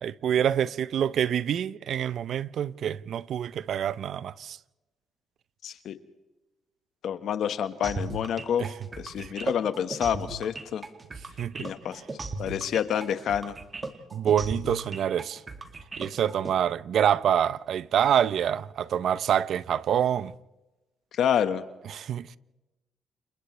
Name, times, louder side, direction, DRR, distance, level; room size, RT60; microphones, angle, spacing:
voice 1, 0.0-4.6 8.6-8.7 9.2-9.3 11.4-11.7 14.1-15.4 16.0-20.3 21.9-22.3, right 9 dB, 65° right, 0.6 m, -26 dB
voice 2, 5.6-6.0 7.0-8.7 9.0-10.8 11.6-12.0 12.4-13.5 21.2-21.6, left 9 dB, 70° left, 1.4 m, -28 dB
sound 1, 7.8-16.5, right 3 dB, 30° right, 2.3 m, -36 dB
29.5 x 27.5 x 3.3 m
cardioid pair, 90°, 0 cm